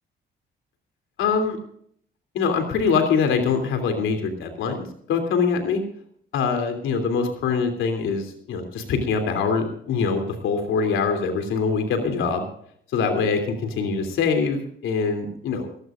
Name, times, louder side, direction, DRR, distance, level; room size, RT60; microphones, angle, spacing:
voice 1, 1.2-1.6 2.3-5.8 6.3-12.4 12.9-15.7, left 5 dB, 85° left, 6 dB, 3.1 m, -23 dB
18.5 x 17.0 x 2.5 m, 0.64 s
cardioid pair, 90°, 20 cm